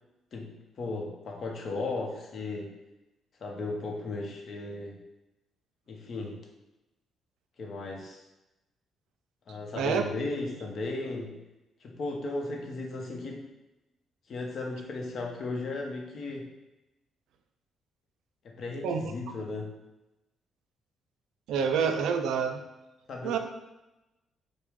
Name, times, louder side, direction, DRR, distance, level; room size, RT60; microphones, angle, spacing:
voice 1, 0.3-2.7 3.4-5.0 5.9-6.4 7.6-8.2 9.5-11.4 11.8-13.4 14.3-16.5 18.4-19.7 23.1-23.4, left 2 dB, 55° left, 1 dB, 0.8 m, -36 dB
voice 2, 21.5-22.6 23.2-23.4, right 6 dB, 85° right, 6 dB, 0.4 m, -27 dB
4.7 x 2.1 x 3.5 m, 0.98 s
cardioid pair, 90°, 0 cm